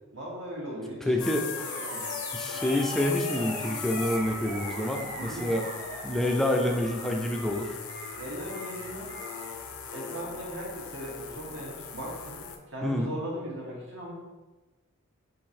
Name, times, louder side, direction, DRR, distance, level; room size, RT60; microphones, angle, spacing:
voice 1, 0.1-1.1 1.5-2.1 5.1-5.6 8.2-9.1 9.9-12.4 12.7-14.1, right 1 dB, 60° right, -4 dB, 1.2 m, -38 dB
voice 2, 1.0-1.5 2.3-5.7 6.0-7.7 12.8-13.1, left 1 dB, ahead, 2 dB, 0.3 m, -27 dB
sound 1, 1.2-12.6, left 5 dB, 75° left, 0.4 m, -38 dB
Animal, 1.6-9.6, right 2 dB, 35° right, 0.7 m, -42 dB
3.8 x 2.7 x 4.2 m, 1.2 s
head